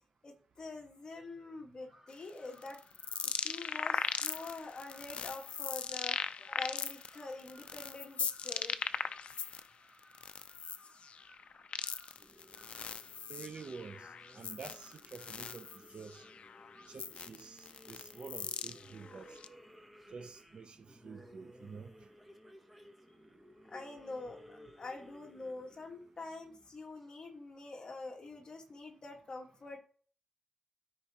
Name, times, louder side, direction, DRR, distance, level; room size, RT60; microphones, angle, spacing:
voice 1, 0.2-2.8 3.2-8.9 23.7-29.8, left 3 dB, 40° left, 1.5 m, -46 dB
Crow, 1.8-17.2, right 1 dB, 25° right, 2.8 m, -63 dB
sound 1, 2.1-9.7 10.0-19.5, left 6 dB, 60° left, 0.4 m, -39 dB
sound 2, 12.1-27.0, equal, 10° right, 0.9 m, -58 dB
voice 2, 13.3-14.1 14.3-15.7 15.9-16.2 16.9-19.4 20.1-20.8 21.0-21.9, right 5 dB, 50° right, 0.5 m, -48 dB
13.0 x 4.6 x 2.9 m
wide cardioid pair, 160°, 2 cm